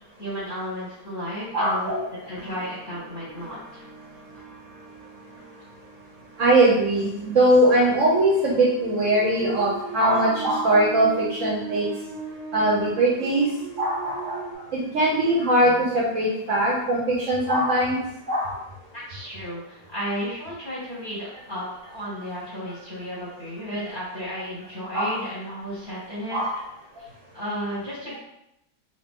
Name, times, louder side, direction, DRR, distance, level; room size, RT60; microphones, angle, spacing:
voice 1, 0.2-2.0 2.3-3.8 18.9-21.7 21.9-26.4 27.0-27.1 27.3-28.2, equal, 40° left, -6 dB, 0.8 m, -33 dB
voice 2, 1.5-2.1 6.4-11.9 12.5-13.5 13.8-14.4 14.9-18.0 18.3-18.5 24.9-25.2 26.3-26.5, right 1 dB, 65° right, -4 dB, 0.8 m, -21 dB
sound 1, 1.9-14.6, right 2 dB, 10° right, 1.2 m, -39 dB
2.8 x 2.8 x 3.4 m, 0.83 s
omnidirectional pair, 1.8 m